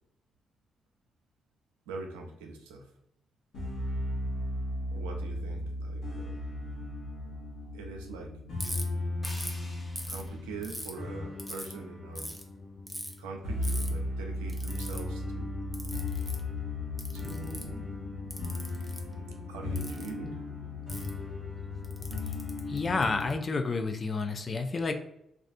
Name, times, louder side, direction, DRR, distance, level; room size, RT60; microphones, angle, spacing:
voice 1, 1.9-2.9 4.9-6.4 7.7-8.4 10.1-12.4 13.2-15.5 17.1-17.9 19.5-20.4, right 3 dB, 85° right, 2 dB, 0.4 m, -42 dB
sound 1, 3.5-23.3, left 2 dB, 70° left, 1.0 m, -36 dB
Ratchet pawl, 8.6-8.8 9.2-9.6 10.0-10.9 11.4-11.7 12.1-12.4 12.9-13.1 13.6-13.9 14.5-15.0 15.7-16.4 17.0-17.8 18.3-19.0 19.7-20.1 20.9-21.1 21.8-23.3, equal, 10° right, 0.6 m, -40 dB
sound 2, 9.2-12.2, left 1 dB, 20° left, 1.4 m, -52 dB
voice 2, 22.7-24.9, left 3 dB, 45° left, 7 dB, 0.4 m, -30 dB
2.4 x 2.3 x 2.5 m, 0.78 s
hypercardioid pair, 40°, 0 cm